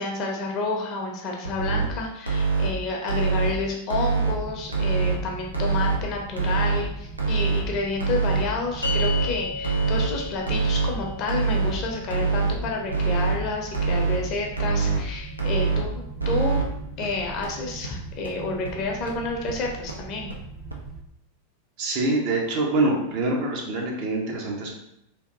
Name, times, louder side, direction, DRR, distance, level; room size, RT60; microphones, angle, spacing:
voice 1, 0.0-16.7 17.0-20.3, left 3 dB, 40° left, 1 dB, 0.6 m, -30 dB
sound 1, 1.4-1.9 2.3-2.7 3.1-3.5 3.9-4.3 4.7-5.1 5.5-6.0 6.4-6.8 7.2-7.6 8.0-8.4 8.8-9.2 9.6-10.1 10.5-10.9 11.3-11.7 12.1-12.5 12.9-13.4 13.7-14.2 14.6-15.0 15.4-15.8 16.2-16.6 17.0-17.1 17.4-17.5 17.8-17.9 18.3-18.4 18.6-18.7 19.1-19.2 19.5-19.6 19.9-20.0 20.3-20.4 20.7-20.8, right 5 dB, 85° right, 0.5 m, -23 dB
sound 2, 4.1-21.0, right 4 dB, 20° right, 0.3 m, -40 dB
sound 3, 8.8-15.4, left 4 dB, 80° left, 0.3 m, -37 dB
voice 2, 21.8-24.7, right 2 dB, 45° right, 0 dB, 0.7 m, -25 dB
3.3 x 2.5 x 2.5 m, 0.78 s
figure-of-eight pair, 90°, 0 cm